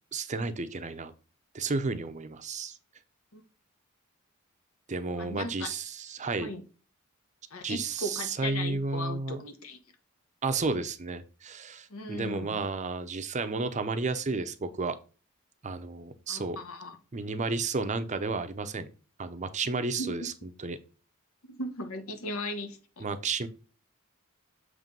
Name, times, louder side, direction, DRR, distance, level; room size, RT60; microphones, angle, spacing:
voice 1, 0.1-1.1 1.5-2.8 4.9-6.5 7.6-9.4 10.4-15.0 15.6-16.6 17.1-18.9 19.2-20.3 20.6-20.8 23.0-23.5, right 3 dB, 35° right, 0.6 m, -32 dB
voice 2, 5.2-5.7 6.4-6.6 7.5-9.8 11.9-12.6 16.3-17.0 19.6-20.3 21.4-23.0, left 1 dB, 80° left, 1.2 m, -37 dB
7.5 x 3.3 x 5.2 m
head